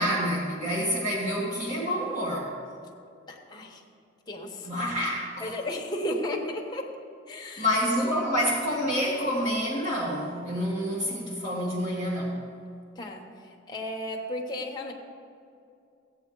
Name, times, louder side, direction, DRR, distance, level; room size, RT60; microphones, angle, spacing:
voice 1, 0.0-2.5 4.6-5.5 7.6-12.5, equal, 35° right, -5 dB, 1.7 m, -28 dB
voice 2, 3.3-3.8 4.3-4.7 5.4-6.9 7.3-7.7 13.0-14.9, left 1 dB, 20° left, 0 dB, 1.1 m, -34 dB
14.5 x 8.7 x 3.9 m, 2.5 s
head